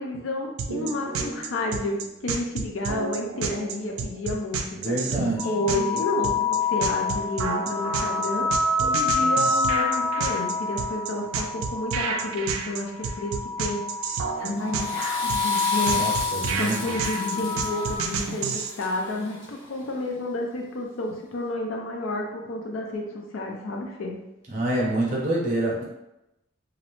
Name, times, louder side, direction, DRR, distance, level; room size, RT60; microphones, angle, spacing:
voice 1, 0.0-5.0 5.4-8.5 8.8-13.8 14.1-16.0 16.4-24.2, left 2 dB, 75° left, 1 dB, 0.4 m, -31 dB
sound 1, 0.6-18.7, right 5 dB, 90° right, 0.3 m, -30 dB
voice 2, 4.8-5.5 15.9-16.8 24.5-25.8, right 1 dB, 35° right, -3 dB, 0.6 m, -26 dB
sound 2, 5.4-12.4 12.9-14.3 14.6-18.0, left 4 dB, 50° left, 0.9 m, -27 dB
Water / Toilet flush, 14.6-19.8, left 1 dB, 20° left, 0.6 m, -35 dB
2.5 x 2.0 x 2.9 m, 0.92 s
head